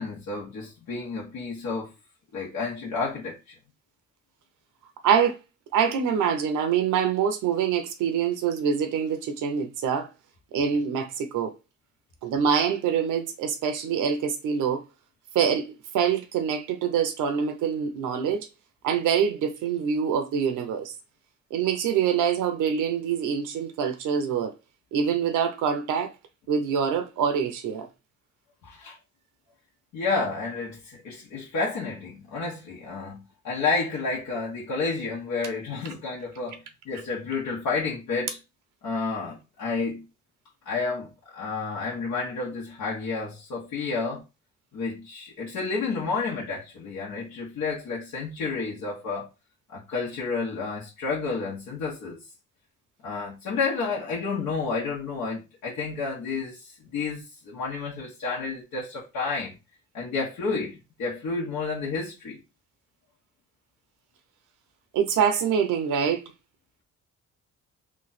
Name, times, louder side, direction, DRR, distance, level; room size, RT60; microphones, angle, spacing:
voice 1, 0.0-1.9 2.3-3.5 28.6-29.0 29.9-38.4 38.8-40.0 40.6-44.2 44.7-49.3 49.7-52.2 53.0-59.5 59.9-62.4, left 4 dB, 75° left, 1.2 m, -30 dB
voice 2, 5.0-5.4 5.7-10.1 10.5-11.5 12.2-14.8 15.3-15.7 15.9-18.5 18.8-20.9 21.5-24.5 24.9-26.1 26.5-27.9 64.9-66.2, right 7 dB, 85° right, 0.8 m, -25 dB
3.2 x 2.4 x 4.1 m
cardioid pair, 90°, 30 cm